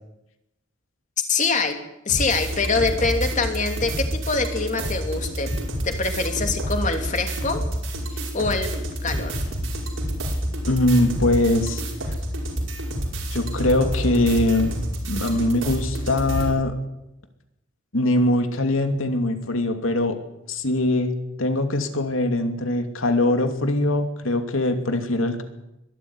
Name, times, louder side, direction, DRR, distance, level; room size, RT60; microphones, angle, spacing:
voice 1, 1.3-1.8 2.0-5.5 5.8-7.6 8.3-9.4, left 4 dB, 40° left, 5 dB, 3.0 m, -24 dB
sound 1, 2.1-16.5, equal, 75° right, 5.7 m, -28 dB
voice 2, 10.7-11.8 13.3-14.7 15.1-16.8 17.9-20.2 20.5-21.1 21.4-25.4, left 1 dB, 90° left, 6 dB, 2.7 m, -22 dB
22.0 x 13.0 x 9.8 m, 0.89 s
head